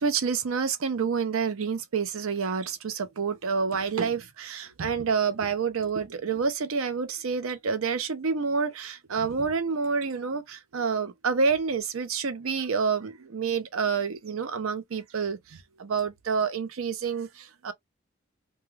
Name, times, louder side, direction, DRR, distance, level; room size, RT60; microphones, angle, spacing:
voice 1, 0.0-17.7, right 5 dB, 85° right, 0.6 m, -28 dB
2.3 x 2.2 x 3.1 m
head